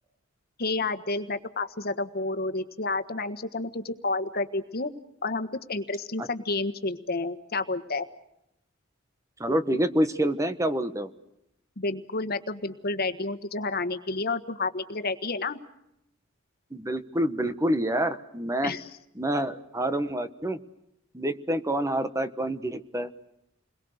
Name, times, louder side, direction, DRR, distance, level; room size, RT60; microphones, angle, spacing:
voice 1, 0.6-4.9 5.2-8.1 11.8-15.6 18.6-18.9, left 3 dB, 50° left, 10 dB, 1.5 m, -30 dB
voice 2, 9.4-11.1 16.7-18.7 19.2-20.6 21.1-23.1, right 1 dB, 15° right, 11 dB, 1.2 m, -27 dB
30.0 x 22.0 x 6.5 m, 0.82 s
head